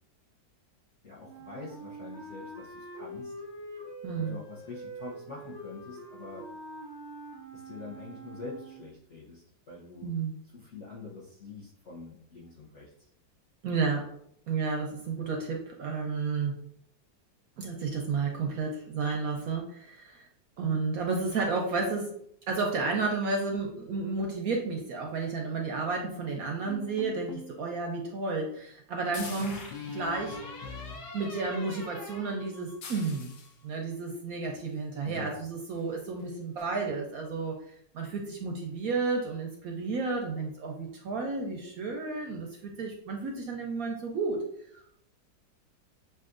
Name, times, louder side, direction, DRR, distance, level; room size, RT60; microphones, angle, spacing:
voice 1, 1.0-3.3 4.2-6.5 7.5-10.1 10.5-12.9 29.2-29.5 34.5-34.6 35.0-35.4, left 4 dB, 50° left, -6 dB, 0.9 m, -45 dB
Wind instrument woodwind instrument, 1.2-8.9, right 2 dB, 15° left, 0.9 m, -44 dB
voice 2, 4.0-4.4 10.0-10.4 13.6-14.1 14.5-16.5 17.6-20.3 20.6-22.2 22.5-29.7 29.9-30.7 31.1-33.3 33.6-37.5 37.9-44.4 44.7-44.8, right 4 dB, 70° right, 1 dB, 0.9 m, -32 dB
sound 1, 26.7-27.6 29.4-33.2, left 3 dB, 70° left, 1.3 m, -42 dB
sound 2, 29.1-30.1 32.8-33.6 35.1-35.2 35.7-35.9 36.2-36.3 36.6-36.7, left 5 dB, 90° left, 1.5 m, -45 dB
6.8 x 2.5 x 2.5 m, 0.71 s
omnidirectional pair, 2.0 m